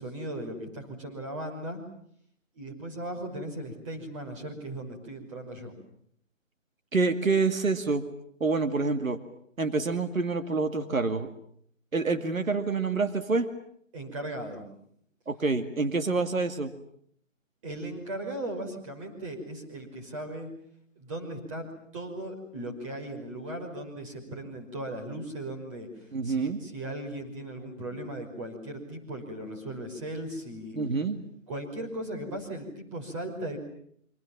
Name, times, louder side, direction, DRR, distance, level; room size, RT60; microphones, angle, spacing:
voice 1, 0.0-1.8 2.6-5.7 13.9-14.6 17.6-20.5 21.0-21.7 21.9-30.8 31.5-33.6, right 1 dB, 25° right, 2 dB, 5.6 m, -37 dB
voice 2, 6.9-8.0 8.4-9.2 9.6-11.3 11.9-13.5 15.3-16.7 26.1-26.6 30.7-31.2, right 4 dB, 90° right, 8 dB, 2.5 m, -27 dB
28.0 x 26.0 x 7.3 m, 0.66 s
hypercardioid pair, 165°, 39 cm